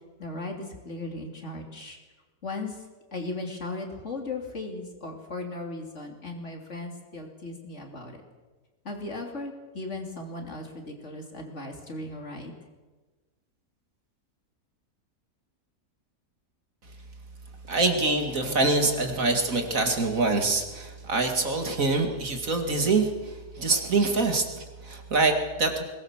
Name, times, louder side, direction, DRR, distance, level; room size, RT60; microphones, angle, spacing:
voice 1, 0.2-2.0 2.4-2.8 3.1-8.2 8.8-12.5, left 2 dB, 50° left, 3 dB, 3.2 m, -37 dB
voice 2, 17.7-25.8, right 3 dB, 60° right, 4 dB, 2.6 m, -25 dB
21.5 x 19.5 x 7.3 m, 1.3 s
omnidirectional pair, 1.6 m